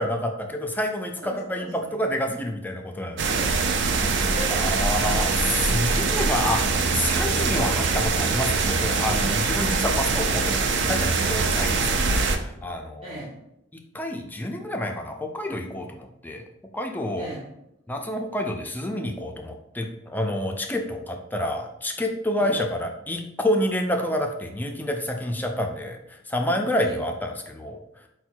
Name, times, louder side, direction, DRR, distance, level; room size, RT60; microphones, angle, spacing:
voice 1, 0.0-3.2 4.5-13.2 13.9-16.4 16.7-17.3 17.9-27.8, left 1 dB, 10° left, 3 dB, 0.3 m, -28 dB
voice 2, 1.2-1.9 3.3-4.7 13.0-13.4 17.2-17.5 22.4-22.6 26.7-26.9, equal, 30° right, -6 dB, 0.8 m, -38 dB
sound 1, 3.2-12.4, right 4 dB, 60° right, 0.4 m, -23 dB
4.4 x 2.2 x 4.4 m, 0.81 s
head